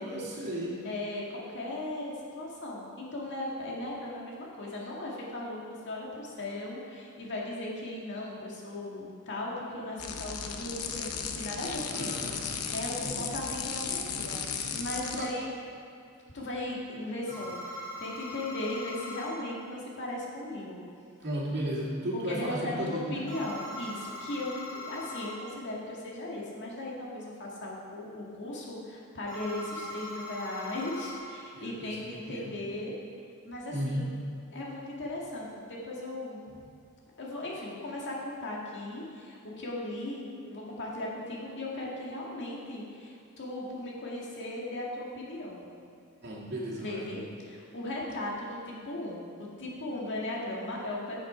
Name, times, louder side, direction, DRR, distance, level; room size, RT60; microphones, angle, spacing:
voice 1, 0.0-0.8 11.9-12.6 13.0-13.4 15.1-15.3 21.2-23.3 31.5-32.6 32.8-32.9 33.7-34.2 46.2-47.1, right 1 dB, 50° right, -5 dB, 2.1 m, -35 dB
voice 2, 0.8-15.5 16.3-20.8 22.1-32.9 33.4-34.1 34.5-36.6 37.2-45.7 46.7-51.2, left 1 dB, 55° left, -3 dB, 1.8 m, -37 dB
sound 1, 10.0-15.4, left 6 dB, 75° left, 0.8 m, -35 dB
sound 2, 17.3-19.3 23.3-25.3 29.3-31.2, left 1 dB, 15° left, 1.9 m, -41 dB
9.0 x 7.5 x 4.9 m, 2.5 s
head